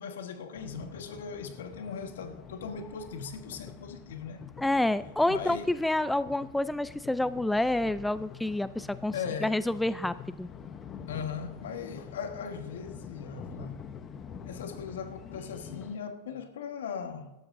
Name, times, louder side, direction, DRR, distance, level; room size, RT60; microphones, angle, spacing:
voice 1, 0.0-4.5 5.3-5.7 9.1-9.6 11.1-13.8 14.4-17.3, left 6 dB, 80° left, 1.3 m, -39 dB
sound 1, 0.6-16.0, left 7 dB, 30° left, 0.9 m, -46 dB
voice 2, 4.6-9.1 9.4-10.5, left 1 dB, 5° left, 0.4 m, -28 dB
17.5 x 12.5 x 2.6 m
hypercardioid pair, 115°, 0 cm